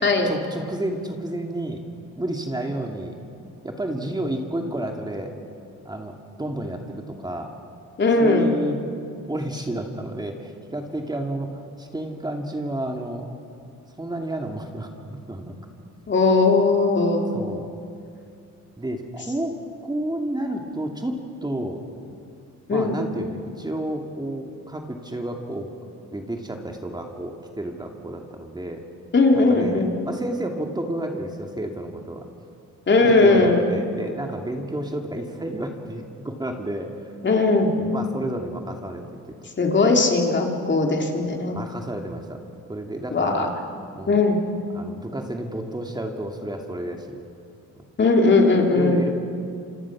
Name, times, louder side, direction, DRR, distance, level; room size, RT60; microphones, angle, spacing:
voice 1, 0.2-1.8 2.2-3.2 3.6-5.3 5.8-7.5 8.2-8.8 9.3-13.3 14.0-15.5 17.3-17.7 18.8-21.8 22.7-25.7 26.1-28.9 29.3-32.2 33.0-37.1 37.7-39.0 41.5-42.4 42.7-43.5 43.9-44.3 44.7-47.2 48.7-49.1, right 1 dB, 15° right, 3 dB, 2.5 m, -31 dB
voice 2, 8.0-8.5 16.1-17.3 22.7-23.0 29.1-29.9 32.9-33.6 37.2-37.7 39.6-41.6 43.1-43.5 44.1-44.4 48.0-49.0, left 3 dB, 35° left, 2 dB, 3.3 m, -18 dB
28.0 x 25.5 x 6.2 m, 2.5 s
cardioid pair, 90°, 30 cm